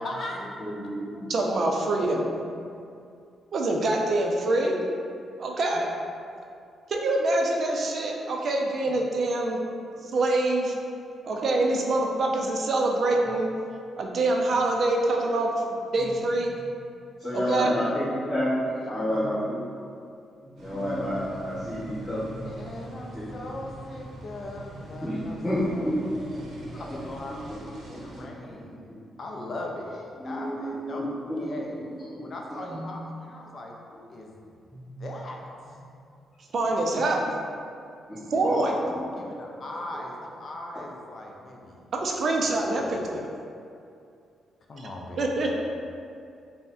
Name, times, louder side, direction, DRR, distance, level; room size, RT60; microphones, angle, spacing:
voice 1, 0.0-0.5 18.8-19.5 22.5-25.4 25.7-25.9 26.7-28.9 29.2-31.0 31.3-31.8 32.2-34.5 35.0-35.5 36.6-36.7 38.4-38.9 39.2-41.9 42.8-43.1 44.7-45.6, left 1 dB, 40° left, -1 dB, 0.3 m, -39 dB
voice 2, 0.6-1.3 2.1-2.2 11.3-11.4 16.0-16.1 17.2-18.5 18.9-19.6 20.4-22.4 23.1-23.2 24.3-26.0 26.3-26.4 26.7-27.1 27.5-28.3 28.6-28.7 30.2-31.0 31.3-31.5 32.1-32.2 32.6-32.9 34.7-35.1 36.9-37.1 38.1-38.2 38.8-39.7, equal, 10° left, -18 dB, 1.0 m, -31 dB
voice 3, 1.3-2.3 3.5-4.8 5.4-5.9 6.9-9.6 10.0-10.8 11.2-13.5 14.0-16.5 17.3-17.7 36.5-37.2 38.3-38.7 41.9-43.3 44.8-44.9 45.2-45.6, right 2 dB, 45° right, 0 dB, 0.3 m, -25 dB
sound 1, 20.6-28.2, right 1 dB, 80° right, 0.6 m, -43 dB
3.5 x 2.0 x 2.5 m, 2.4 s
cardioid pair, 150°, 0 cm